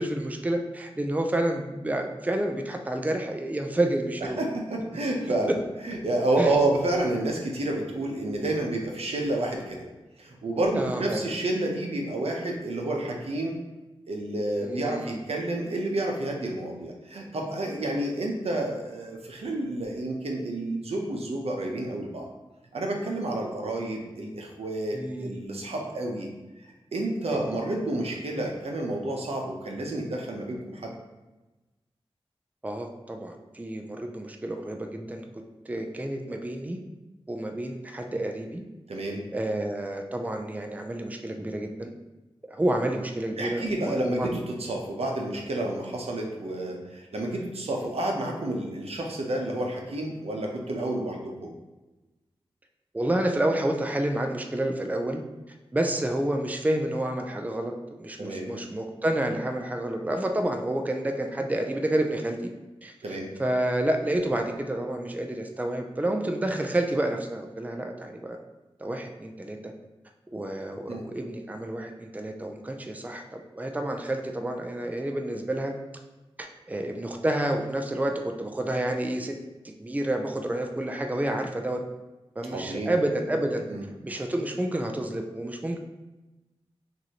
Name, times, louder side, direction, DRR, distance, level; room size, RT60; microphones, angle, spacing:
voice 1, 0.0-4.4 6.4-6.6 10.7-11.3 14.6-15.2 24.9-25.4 27.3-27.6 32.6-35.3 35.7-36.8 37.3-38.6 39.3-41.9 42.5-44.4 47.8-47.9 52.9-55.2 55.7-57.7 58.0-62.4 62.8-68.4 68.8-69.7 70.3-75.7 76.4-79.4 79.6-81.8 82.4-83.6 84.0-85.8, right 1 dB, 15° right, 3 dB, 0.5 m, -29 dB
voice 2, 4.4-5.5 5.8-9.9 10.2-13.5 14.1-22.3 22.7-26.3 26.9-30.9 38.9-39.2 43.4-51.5 58.2-58.5 63.0-63.3 70.9-71.0 82.5-82.9 83.7-83.8, right 1 dB, 85° right, 1 dB, 0.8 m, -29 dB
5.9 x 2.7 x 2.9 m, 1.1 s
wide cardioid pair, 55°, 10 cm